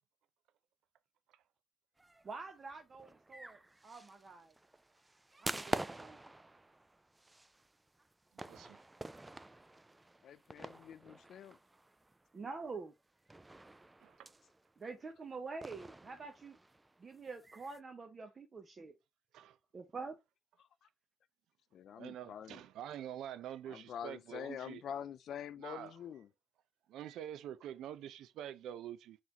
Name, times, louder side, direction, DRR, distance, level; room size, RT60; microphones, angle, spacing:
sound 1, 2.0-12.4 12.7-12.8 13.3-14.9 15.6-17.8, right 2 dB, 15° right, 0.3 m, -47 dB
voice 1, 2.2-4.5 5.4-6.2 12.3-12.9 14.8-16.6 17.0-18.9 19.7-20.2, right 4 dB, 40° right, 0.7 m, -46 dB
voice 2, 8.3-8.8 14.0-14.3 19.3-19.6 22.0-24.8 25.6-26.0 26.9-29.2, right 10 dB, 85° right, 0.4 m, -46 dB
voice 3, 10.2-11.6 20.6-20.7 21.7-22.6 23.7-26.3, left 9 dB, 70° left, 0.3 m, -46 dB
3.9 x 3.0 x 4.0 m
cardioid pair, 90°, 0 cm